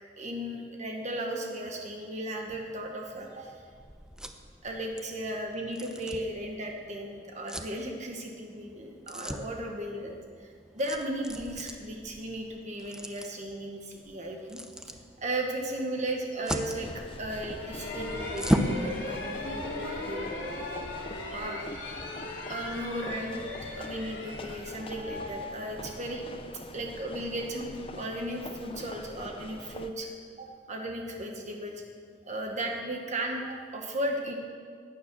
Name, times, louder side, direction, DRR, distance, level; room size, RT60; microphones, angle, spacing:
voice 1, 0.2-3.6 4.6-14.9 15.2-20.3 21.3-21.7 22.5-26.2 26.7-30.1 30.4-31.8 32.3-34.3, right 1 dB, 40° right, 1 dB, 1.4 m, -36 dB
sound 1, 2.5-18.8, equal, 5° right, 0.8 m, -38 dB
sound 2, 16.8-29.9, left 2 dB, 30° left, 0.7 m, -44 dB
sound 3, 17.5-26.2, left 2 dB, 90° left, 2.8 m, -38 dB
16.0 x 9.9 x 6.2 m, 2.1 s
head